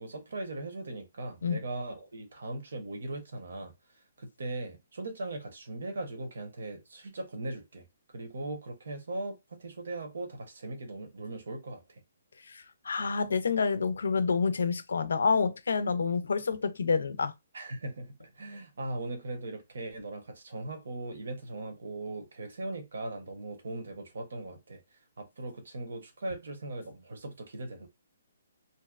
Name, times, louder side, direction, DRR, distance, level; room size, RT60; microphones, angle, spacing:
voice 1, 0.0-3.7 4.2-7.8 8.1-12.0 17.5-24.8 25.2-27.9, right 2 dB, 70° right, 0.8 m, -39 dB
voice 2, 12.5-17.3, left 5 dB, 90° left, 0.4 m, -28 dB
2.7 x 2.0 x 2.4 m
hypercardioid pair, 175°, 0 cm